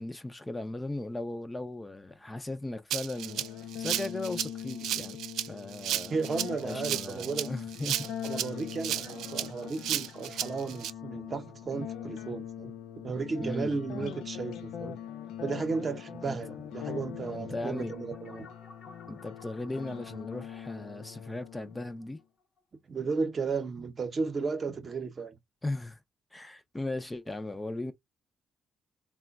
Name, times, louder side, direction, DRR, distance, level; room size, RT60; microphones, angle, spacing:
voice 1, 0.0-3.5 3.8-6.2 6.6-8.1 13.4-14.1 16.3-16.4 17.3-17.9 19.1-22.2 25.6-26.0 26.3-27.9, left 2 dB, 15° left, 0.4 m, -37 dB
Rattle (instrument), 2.9-10.9, right 11 dB, 85° right, 0.3 m, -33 dB
sound 1, 3.1-22.1, left 9 dB, 85° left, 0.4 m, -42 dB
voice 2, 6.1-7.5 8.2-15.0 15.4-18.5 22.9-25.4, right 4 dB, 45° right, 0.7 m, -34 dB
sound 2, 17.8-22.6, left 3 dB, 55° left, 0.8 m, -55 dB
3.7 x 2.1 x 2.3 m
cardioid pair, 85°, 0 cm